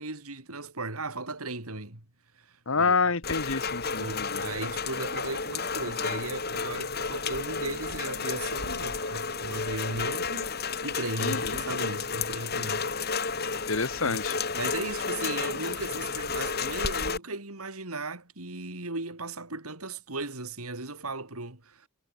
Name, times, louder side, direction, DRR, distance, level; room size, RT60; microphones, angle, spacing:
voice 1, 0.0-2.0 2.4-2.5 2.7-3.0 4.0-10.5 10.8-12.9 13.8-21.9, right 2 dB, 90° right, 4.4 m, -37 dB
voice 2, 2.7-4.4 11.2-11.4 13.7-14.3, left 4 dB, 70° left, 1.5 m, -27 dB
Rain, 3.2-17.2, left 5 dB, 45° left, 3.8 m, -32 dB
head